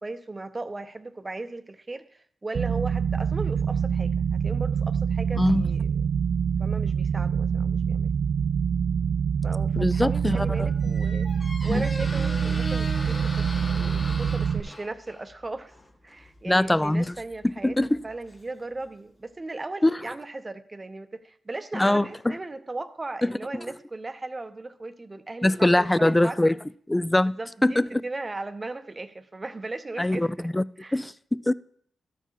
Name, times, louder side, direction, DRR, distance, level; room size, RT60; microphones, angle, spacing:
voice 1, 0.0-6.1 6.6-8.1 9.4-11.3 11.6-15.8 16.0-26.6 27.3-30.5 30.8-31.0, right 2 dB, 30° right, 0.7 m, -37 dB
sound 1, 2.5-14.6, right 7 dB, 70° right, 0.4 m, -25 dB
voice 2, 5.4-5.7 9.8-10.7 11.7-11.9 16.5-17.1 17.4-18.0 19.8-19.9 21.7-22.4 23.2-23.3 25.4-26.5 26.9-27.3 27.6-27.9 30.0-30.6 30.9-31.5, left 1 dB, 15° left, 0.3 m, -22 dB
Squeak, 10.2-18.9, left 1 dB, 40° left, 1.8 m, -40 dB
13.0 x 4.5 x 4.6 m
supercardioid pair, 50°, 0 cm